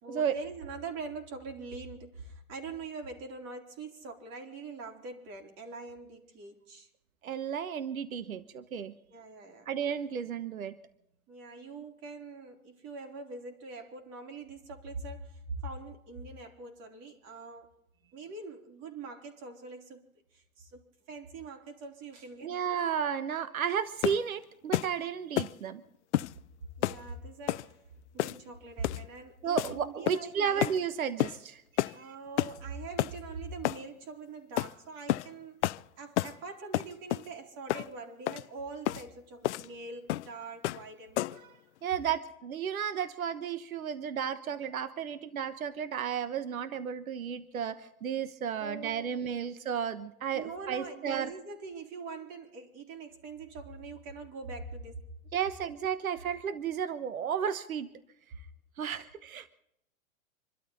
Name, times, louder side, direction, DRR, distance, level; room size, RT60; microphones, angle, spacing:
voice 1, 0.0-6.9 9.1-9.7 11.3-17.7 18.1-20.0 20.3-22.6 26.8-27.8 28.1-30.6 31.9-41.4 48.6-49.5 50.3-55.0, right 3 dB, 40° right, 4.1 m, -43 dB
voice 2, 7.2-8.9 9.7-10.7 22.4-25.8 29.4-31.9 41.8-51.3 55.3-57.9 58.8-59.5, right 8 dB, 75° right, 1.2 m, -33 dB
sound 1, 24.0-24.3 24.7-24.9 25.4-25.6 26.1-26.3 26.8-27.0 27.5-27.7 28.2-28.5 28.8-29.1 29.6-29.7 30.1-30.3 30.6-30.8 31.2-31.4 31.8-32.0 32.4-32.6 33.0-33.2 33.6-33.8 34.6-34.7 35.1-35.3 35.6-35.8 36.2-36.4 36.7-37.3 37.7-37.9 38.3-38.4 38.9-39.0 39.4-39.7 40.1-40.3 40.6-40.9 41.2-41.4, left 15 dB, 55° left, 0.6 m, -30 dB
26.5 x 12.5 x 4.1 m
hypercardioid pair, 110°, 42 cm